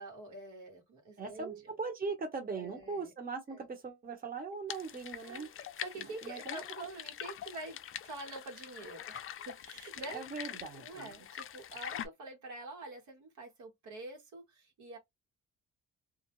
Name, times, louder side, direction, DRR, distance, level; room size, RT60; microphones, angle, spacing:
voice 1, 0.0-1.6 2.6-3.1 3.5-3.7 5.2-5.5 5.8-10.2 10.8-15.0, right 2 dB, 75° right, 1.3 m, -46 dB
voice 2, 1.2-5.5 6.0-6.6 10.1-11.2, right 4 dB, 30° right, 1.0 m, -40 dB
sound 1, 4.7-12.1, left 10 dB, 45° left, 0.4 m, -44 dB
2.5 x 2.0 x 3.0 m
cardioid pair, 90°, 30 cm